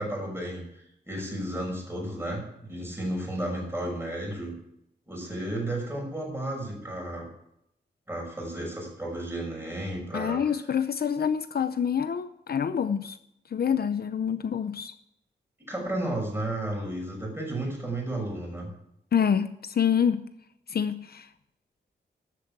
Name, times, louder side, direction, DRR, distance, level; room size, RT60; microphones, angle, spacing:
voice 1, 0.0-4.5 5.1-7.3 8.1-10.6 15.6-18.7, right 1 dB, 15° right, -1 dB, 6.4 m, -33 dB
voice 2, 10.1-13.2 13.5-14.9 19.1-20.2 20.7-21.3, left 7 dB, 60° left, 11 dB, 0.7 m, -26 dB
12.5 x 8.3 x 8.6 m, 0.76 s
wide cardioid pair, 145°, 18 cm